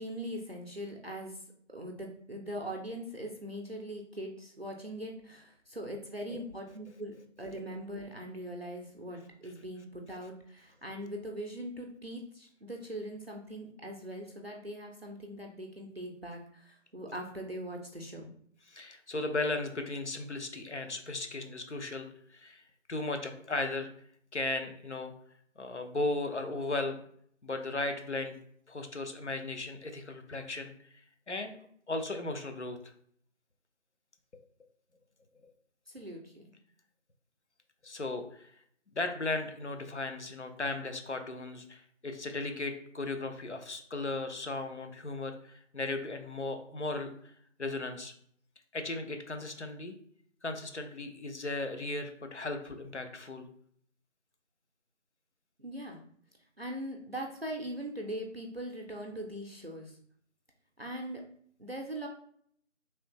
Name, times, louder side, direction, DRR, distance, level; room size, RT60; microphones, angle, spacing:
voice 1, 0.0-1.4 1.7-18.3 35.9-36.4 55.6-56.0 56.6-60.0 60.8-61.2 61.6-62.1, right 1 dB, 50° right, 0 dB, 0.5 m, -41 dB
voice 2, 18.7-22.6 22.9-23.9 24.3-25.1 25.6-27.0 27.4-28.4 28.7-30.7 31.3-31.6 31.9-32.8 35.4-35.5 37.8-38.5 38.9-47.1 47.6-48.1 48.7-50.0 50.4-53.4, left 2 dB, 65° left, 6 dB, 0.7 m, -36 dB
3.3 x 2.7 x 2.9 m, 0.64 s
figure-of-eight pair, 170°, 38 cm